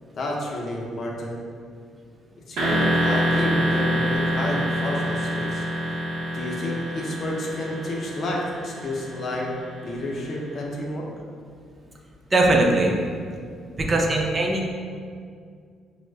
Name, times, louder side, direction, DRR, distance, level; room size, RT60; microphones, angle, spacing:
voice 1, 0.2-1.4 2.5-5.7 6.3-9.5 9.8-11.1, left 1 dB, 55° left, -2 dB, 0.5 m, -30 dB
sound 1, 2.6-10.3, equal, 75° right, 0.6 m, -26 dB
voice 2, 12.3-13.3 13.7-14.7, right 2 dB, 35° right, 0 dB, 0.4 m, -21 dB
4.3 x 2.1 x 2.3 m, 2.1 s
cardioid pair, 85°, 0 cm